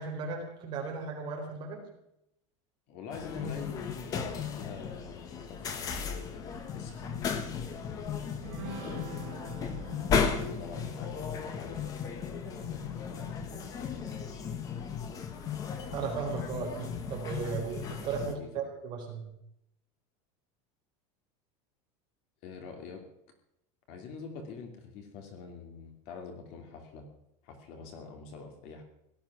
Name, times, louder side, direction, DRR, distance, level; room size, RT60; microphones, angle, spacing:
voice 1, 0.0-1.8 15.9-19.2, right 5 dB, 30° right, 0 dB, 4.4 m, -36 dB
voice 2, 2.9-9.1 10.3-11.8 12.5-14.4 18.2-18.7 22.4-23.0 23.9-27.1 27.4-28.8, left 4 dB, 40° left, 5 dB, 2.7 m, -46 dB
sound 1, 3.1-18.3, left 6 dB, 20° left, 1.3 m, -35 dB
sound 2, 8.4-14.1, right 4 dB, 70° right, 3.9 m, -48 dB
17.5 x 12.5 x 6.1 m, 0.79 s
supercardioid pair, 180°, 16 cm